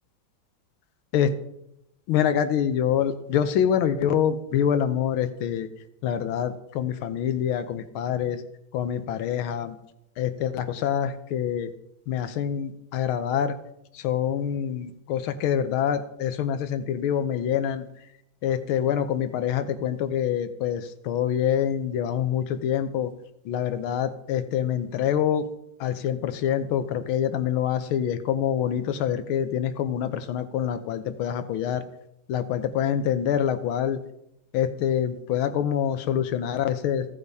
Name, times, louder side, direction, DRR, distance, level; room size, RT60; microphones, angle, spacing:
voice 1, 2.1-5.7 6.0-8.4 8.7-9.8 10.2-11.7 12.1-13.5 13.9-17.8 18.4-23.1 23.4-25.4 25.8-31.8 32.3-34.0 34.5-37.1, left 9 dB, 90° left, 10 dB, 1.6 m, -26 dB
16.0 x 8.4 x 2.7 m, 0.81 s
omnidirectional pair, 2.2 m